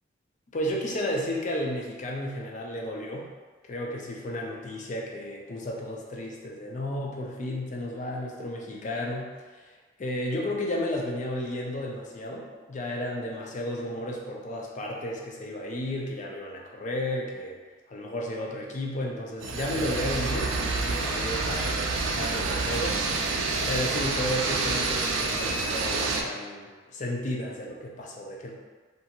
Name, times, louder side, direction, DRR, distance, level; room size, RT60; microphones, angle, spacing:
voice 1, 0.5-3.3 3.7-9.6 10.0-17.6 17.9-23.0 23.7-28.5, left 1 dB, 40° left, -1 dB, 0.4 m, -33 dB
sound 1, 19.4-26.2, right 3 dB, 85° right, 0.3 m, -28 dB
2.6 x 2.3 x 2.8 m, 1.4 s
head